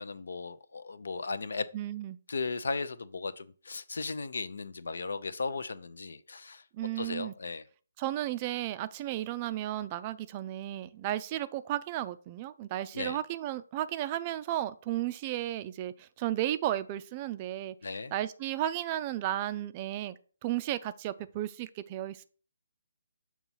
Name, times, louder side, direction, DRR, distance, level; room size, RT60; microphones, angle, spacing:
voice 1, 0.0-1.7 2.3-6.6 7.0-7.6 12.9-13.2 17.8-18.1, left 4 dB, 70° left, 0.5 m, -36 dB
voice 2, 1.7-2.2 6.7-7.3 8.0-17.8 18.1-22.2, right 13 dB, 30° right, 0.3 m, -34 dB
6.8 x 3.1 x 5.4 m
figure-of-eight pair, 145°, 0 cm